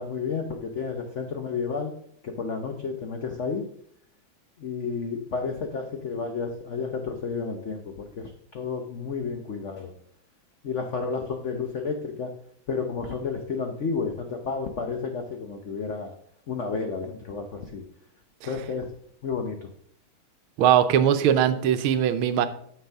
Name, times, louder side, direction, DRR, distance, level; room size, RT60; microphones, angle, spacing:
voice 1, 0.0-1.9 2.2-3.7 4.6-9.9 10.6-12.3 12.7-16.1 16.5-17.8 18.4-18.9 19.2-19.7, left 5 dB, 70° left, 5 dB, 0.6 m, -31 dB
voice 2, 20.6-22.5, right 9 dB, 80° right, 11 dB, 1.5 m, -20 dB
9.2 x 7.2 x 3.5 m, 0.66 s
omnidirectional pair, 2.3 m